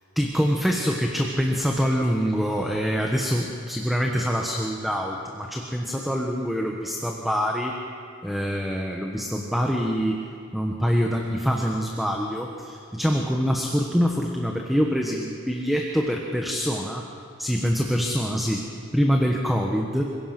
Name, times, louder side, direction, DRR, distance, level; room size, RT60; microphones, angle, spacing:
voice 1, 0.1-7.8 8.2-10.3 10.5-17.0 17.4-20.0, equal, ahead, 0 dB, 1.2 m, -25 dB
26.0 x 16.5 x 6.0 m, 2.6 s
head